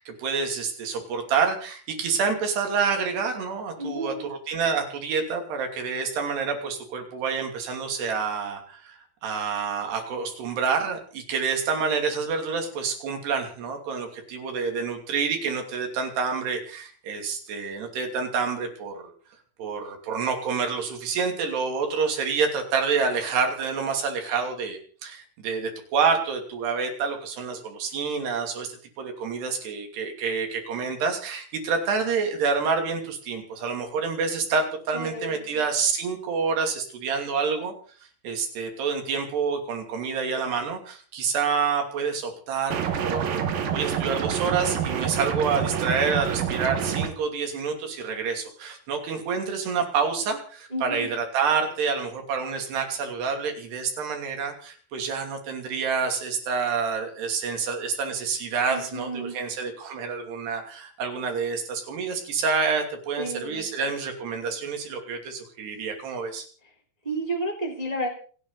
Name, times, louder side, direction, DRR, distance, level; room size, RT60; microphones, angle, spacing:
voice 1, 0.0-19.1 19.6-37.7 38.2-66.5, right 5 dB, 75° right, 4 dB, 5.0 m, -28 dB
voice 2, 3.8-4.2 34.9-35.5 50.7-51.1 58.7-59.3 63.2-63.7 67.0-68.1, right 1 dB, 10° right, 2 dB, 2.9 m, -31 dB
sound 1, 42.7-47.1, right 8 dB, 60° right, 3.2 m, -27 dB
28.5 x 10.0 x 4.1 m, 0.43 s
omnidirectional pair, 4.7 m